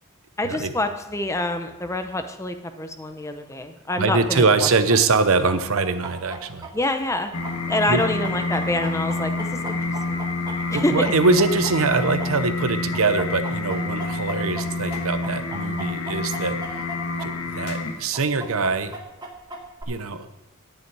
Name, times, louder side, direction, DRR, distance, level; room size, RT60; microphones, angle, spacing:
voice 1, 0.4-4.7 6.7-7.3 7.7-9.8 10.1-10.3 10.7-11.1, left 1 dB, 15° left, 7 dB, 0.7 m, -26 dB
voice 2, 4.0-6.7 7.9-8.0 10.7-16.9 17.2-18.9 19.9-20.3, right 3 dB, 65° right, 11 dB, 0.7 m, -23 dB
Chicken rooster, 4.3-12.6 12.9-17.3 17.5-17.6 18.1-19.8, right 2 dB, 20° right, 1.2 m, -37 dB
sound 1, 7.3-18.2, left 3 dB, 75° left, 1.4 m, -28 dB
11.0 x 9.7 x 4.7 m, 1.0 s
head